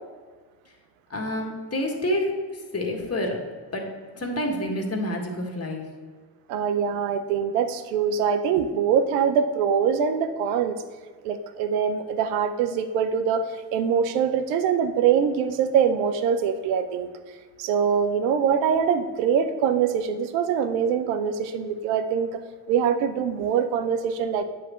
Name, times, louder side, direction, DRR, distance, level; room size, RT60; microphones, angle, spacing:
voice 1, 1.1-2.3 2.7-3.4 3.7-5.8, left 1 dB, 30° left, 1 dB, 1.7 m, -28 dB
voice 2, 6.5-10.8 11.2-13.4 13.7-17.1 17.6-22.4 22.7-24.4, right 7 dB, 80° right, 9 dB, 0.7 m, -23 dB
8.7 x 3.3 x 6.2 m, 1.5 s
hypercardioid pair, 45°, 50 cm